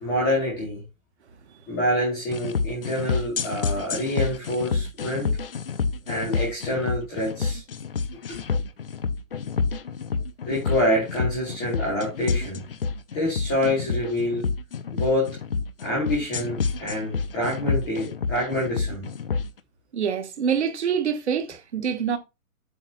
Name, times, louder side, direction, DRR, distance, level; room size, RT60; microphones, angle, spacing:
voice 1, 0.0-0.8 1.7-5.3 6.1-7.6 8.3-8.4 10.4-12.6 13.1-14.4 14.9-15.4 15.8-19.1, left 1 dB, ahead, 0.6 m, -26 dB
sound 1, 2.3-19.5, left 5 dB, 45° left, 0.5 m, -28 dB
voice 2, 19.9-22.2, right 7 dB, 50° right, 1.3 m, -25 dB
7.8 x 2.9 x 6.0 m
hypercardioid pair, 180°, 42 cm